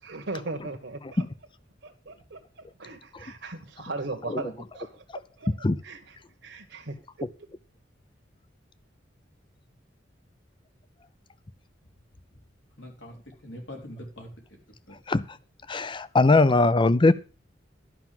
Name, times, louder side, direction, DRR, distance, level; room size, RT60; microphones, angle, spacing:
voice 1, 0.0-1.3 1.8-5.5 5.8-7.5, right 2 dB, 65° right, 1.3 m, -38 dB
voice 2, 12.8-13.1 13.4-14.3 14.9-15.0 17.1-17.2, left 1 dB, 75° left, 4.1 m, -42 dB
voice 3, 15.7-17.1, left 3 dB, 25° left, 0.6 m, -20 dB
11.5 x 5.9 x 7.5 m
head